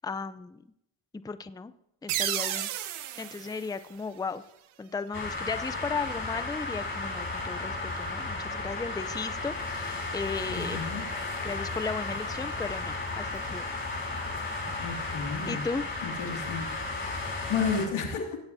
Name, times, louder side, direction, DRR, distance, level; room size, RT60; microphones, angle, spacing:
voice 1, 0.0-0.6 1.1-1.7 2.0-2.7 3.2-4.4 4.8-10.9 11.4-13.8 15.5-15.8, left 4 dB, 10° left, 13 dB, 0.5 m, -35 dB
sound 1, 2.1-4.7, right 12 dB, 85° right, 0.9 m, -34 dB
sound 2, 5.1-17.9, left 2 dB, 25° left, 4.8 m, -34 dB
voice 2, 10.5-11.1 14.8-15.7 16.0-18.4, left 5 dB, 75° left, 2 dB, 2.5 m, -33 dB
17.0 x 10.5 x 2.7 m, 0.80 s
supercardioid pair, 60°, 47 cm